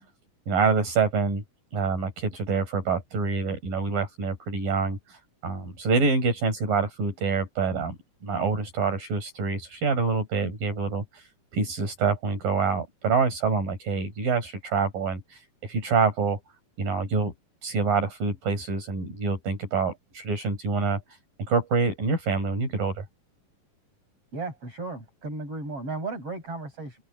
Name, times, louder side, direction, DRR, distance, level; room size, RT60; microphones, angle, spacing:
voice 1, 0.5-1.4 1.7-8.0 8.2-16.4 16.8-17.3 17.6-23.0, right 4 dB, 75° right, 8.1 m, -26 dB
voice 2, 24.3-27.0, right 3 dB, 40° right, 9.1 m, -35 dB
open air
omnidirectional pair, 4.0 m